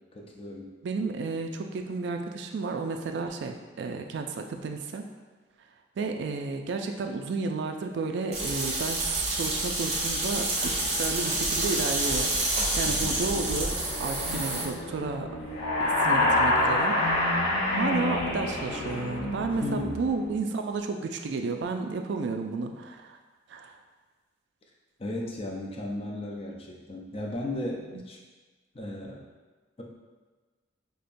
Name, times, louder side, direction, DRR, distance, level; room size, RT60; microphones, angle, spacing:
voice 1, 0.1-0.7 12.8-13.2 19.5-20.0 25.0-28.2 28.7-29.2, left 1 dB, 30° left, -1 dB, 0.4 m, -35 dB
voice 2, 0.8-5.1 6.0-15.3 15.8-17.3 17.7-23.2 23.5-23.8, right 4 dB, 60° right, 4 dB, 0.3 m, -32 dB
sound 1, 8.3-14.6, right 2 dB, 35° right, 0.8 m, -28 dB
sound 2, 12.7-20.4, left 2 dB, 85° left, 0.5 m, -37 dB
sound 3, 15.5-19.3, left 1 dB, 65° left, 0.9 m, -25 dB
5.3 x 2.1 x 2.5 m, 1.3 s
head